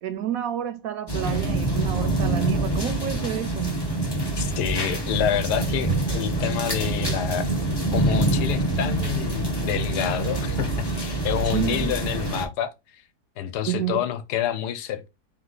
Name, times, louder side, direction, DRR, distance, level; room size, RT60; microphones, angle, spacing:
voice 1, 0.0-3.8 11.5-11.9 13.7-14.0, right 11 dB, 70° right, 0.9 m, -29 dB
sound 1, 1.1-12.5, right 2 dB, 25° left, 0.5 m, -26 dB
voice 2, 4.4-7.5 7.9-13.0 13.4-15.1, left 10 dB, 80° left, 1.2 m, -28 dB
3.7 x 2.9 x 3.8 m
omnidirectional pair, 1.7 m